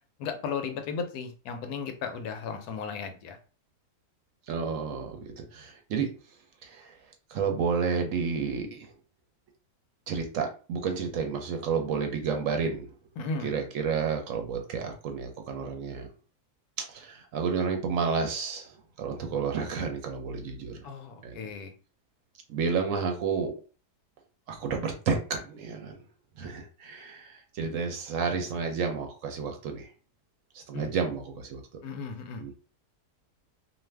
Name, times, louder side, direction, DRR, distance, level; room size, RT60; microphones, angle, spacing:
voice 1, 0.2-3.4 13.2-13.5 20.8-21.7 30.7-30.9 31.8-32.4, left 5 dB, 80° left, 7 dB, 1.1 m, -35 dB
voice 2, 4.5-6.1 6.6-7.0 7.3-8.9 10.1-12.9 13.4-16.1 16.8-20.9 21.2-21.4 22.5-23.5 24.5-26.0 26.4-29.9 30.5-31.6 32.4-32.6, right 5 dB, 70° right, 4 dB, 0.9 m, -31 dB
2.5 x 2.5 x 3.2 m, 0.37 s
omnidirectional pair, 1.6 m